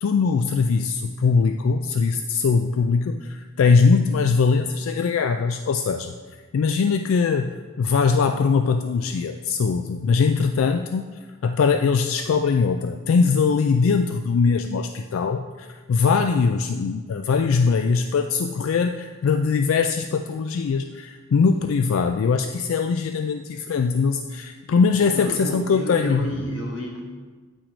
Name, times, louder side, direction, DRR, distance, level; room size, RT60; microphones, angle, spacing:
voice 1, 0.0-6.1 6.5-11.1 11.4-26.3, left 5 dB, 85° left, 7 dB, 0.3 m, -21 dB
voice 2, 24.9-27.0, equal, 60° left, -1 dB, 1.5 m, -31 dB
8.7 x 4.5 x 5.0 m, 1.4 s
head